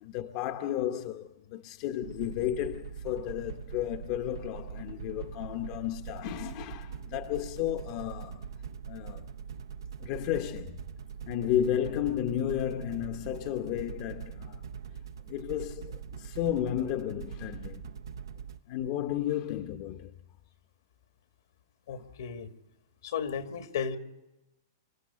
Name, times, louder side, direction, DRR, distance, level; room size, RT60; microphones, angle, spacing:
voice 1, 0.0-8.4 8.9-9.3 10.0-10.8 11.3-14.6 15.3-17.8 18.7-20.1 21.9-22.0, left 11 dB, 45° left, 0.8 m, -33 dB
sound 1, 2.0-18.6, right 7 dB, 85° right, 0.8 m, -42 dB
voice 2, 21.9-22.5 23.0-24.0, left 7 dB, 75° left, 1.7 m, -34 dB
26.0 x 12.5 x 8.3 m
hypercardioid pair, 145°, 2 cm